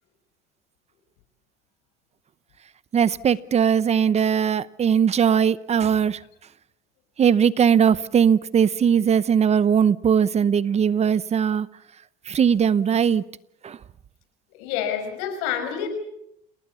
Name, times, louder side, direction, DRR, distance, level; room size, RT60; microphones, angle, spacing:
voice 1, 2.9-6.2 7.2-11.7 12.3-13.2 13.6-13.8, right 7 dB, 35° right, 0.8 m, -20 dB
voice 2, 14.6-15.9, left 9 dB, 90° left, 6.2 m, -28 dB
29.0 x 19.5 x 7.0 m
cardioid pair, 115°, 20 cm